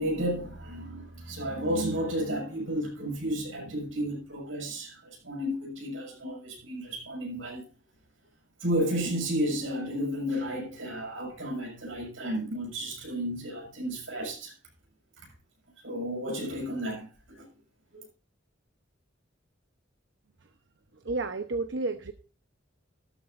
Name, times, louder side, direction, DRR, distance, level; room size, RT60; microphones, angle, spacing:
voice 1, 0.0-7.6 8.6-14.5 15.8-17.5 17.9-18.0, equal, 85° right, 6.8 m, -32 dB
voice 2, 20.9-22.1, right 3 dB, 70° right, 0.9 m, -32 dB
15.5 x 13.0 x 2.6 m
head